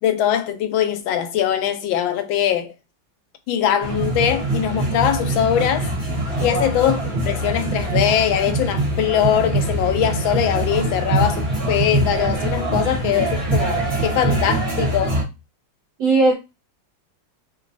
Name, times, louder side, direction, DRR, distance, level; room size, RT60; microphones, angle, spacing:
voice 1, 0.0-2.7 3.5-5.9 6.4-7.0 7.2-15.2, left 10 dB, 85° left, 1.4 m, -21 dB
sound 1, 3.8-15.2, right 2 dB, 35° right, 1.2 m, -23 dB
voice 2, 16.0-16.3, right 3 dB, 85° right, 0.7 m, -18 dB
3.5 x 3.0 x 2.6 m
omnidirectional pair, 2.2 m